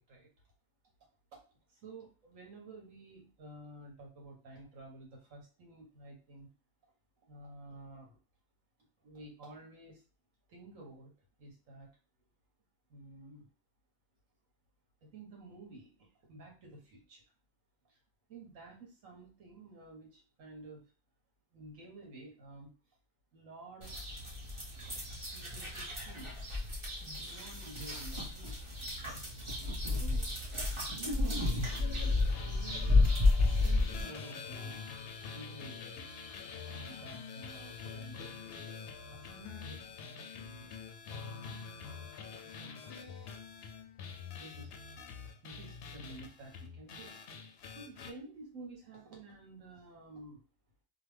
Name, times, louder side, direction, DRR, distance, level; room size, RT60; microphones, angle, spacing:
voice 1, 1.7-6.5 7.3-8.2 9.0-10.0 10.5-11.1 11.4-11.9 12.9-13.5 15.0-17.2 17.9-18.0 18.3-20.9 21.5-22.7 23.3-24.1 25.3-26.3 27.0-28.8 29.0-29.3 29.9-30.3 30.8-33.1 33.6-34.8 35.3-36.0 36.6-38.3 39.1-39.8 41.8-42.0 42.3-43.1 44.4-44.8 45.4-47.2 47.7-50.4, right 2 dB, 80° right, 0 dB, 1.4 m, -51 dB
sound 1, 23.8-34.0, left 2 dB, 25° right, 0.9 m, -32 dB
sound 2, 31.6-48.1, left 5 dB, 65° left, 0.7 m, -46 dB
3.0 x 2.1 x 3.3 m, 0.35 s
omnidirectional pair, 1.4 m